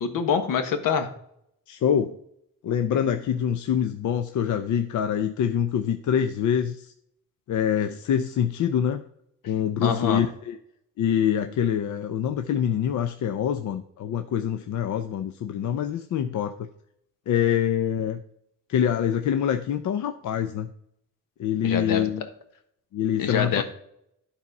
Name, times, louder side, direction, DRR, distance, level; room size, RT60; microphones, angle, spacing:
voice 1, 0.0-1.1 9.8-10.2 21.6-22.1 23.2-23.6, left 6 dB, 80° left, 8 dB, 1.3 m, -25 dB
voice 2, 1.7-2.2 2.6-6.9 7.5-9.0 9.5-10.6 11.0-16.7 17.3-18.2 18.7-20.7 21.4-22.3 22.9-23.6, left 9 dB, 65° left, 8 dB, 0.6 m, -25 dB
12.0 x 4.2 x 5.3 m, 0.73 s
wide cardioid pair, 170°, 32 cm